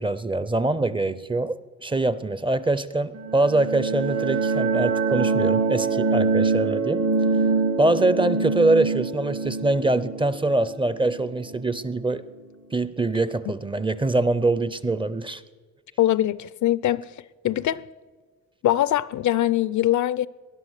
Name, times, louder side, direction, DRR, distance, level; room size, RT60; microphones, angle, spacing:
voice 1, 0.0-7.0 7.8-12.2 12.7-15.4, right 2 dB, 15° right, 0.5 m, -24 dB
sound 1, 3.1-11.7, right 4 dB, 50° right, 1.2 m, -24 dB
voice 2, 16.0-17.1 17.4-17.8 18.6-20.3, left 13 dB, 70° left, 0.5 m, -22 dB
19.5 x 11.0 x 6.4 m
wide cardioid pair, 145°, 31 cm